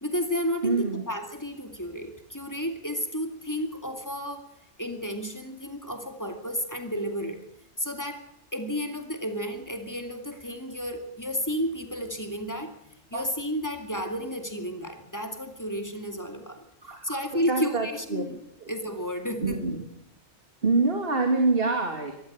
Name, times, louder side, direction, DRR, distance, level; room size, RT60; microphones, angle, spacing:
voice 1, 0.0-4.4 4.8-7.4 7.8-8.2 8.5-12.8 13.1-16.6 17.0-18.4 18.7-19.6, equal, 15° left, 6 dB, 2.6 m, -32 dB
voice 2, 0.6-1.0 13.1-13.2 16.8-17.2 17.5-17.9 18.1-18.2 18.6-18.7 19.4-19.8 20.6-22.1, right 3 dB, 55° right, 4 dB, 2.7 m, -25 dB
23.5 x 14.0 x 8.7 m, 0.74 s
omnidirectional pair, 1.2 m